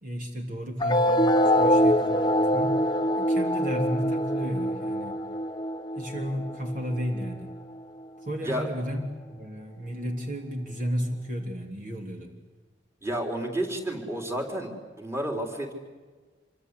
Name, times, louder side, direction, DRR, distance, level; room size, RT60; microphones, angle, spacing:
voice 1, 0.0-2.8 3.2-5.2 6.0-7.5 8.2-9.0 9.3-12.3, equal, 45° right, 3 dB, 3.0 m, -33 dB
sound 1, 0.8-7.8, equal, 25° left, 0.7 m, -24 dB
voice 2, 13.0-14.7 15.0-15.7, right 1 dB, 15° right, 2 dB, 4.0 m, -30 dB
27.5 x 24.5 x 8.4 m, 1.4 s
head